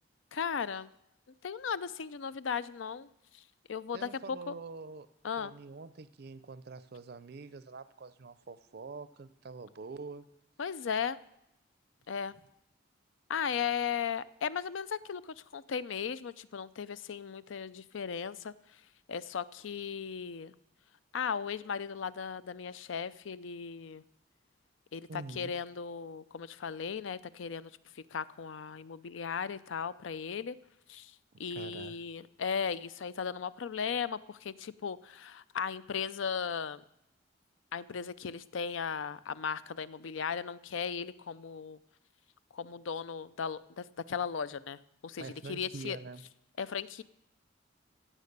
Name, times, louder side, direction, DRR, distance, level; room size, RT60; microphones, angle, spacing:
voice 1, 0.3-0.9 1.4-3.1 3.3-3.4 3.7-4.5 5.2-5.5 10.6-11.2 12.1-12.4 13.3-18.5 19.1-20.6 21.1-24.0 24.9-27.7 28.0-30.6 30.9-31.1 31.4-36.8 37.7-41.8 42.5-46.0 46.6-47.0, left 6 dB, 80° left, 16 dB, 0.5 m, -36 dB
voice 2, 3.9-5.1 5.4-10.3 25.1-25.5 31.3-32.0 45.2-46.2, right 4 dB, 55° right, 14 dB, 0.5 m, -45 dB
16.5 x 7.4 x 6.7 m, 0.84 s
head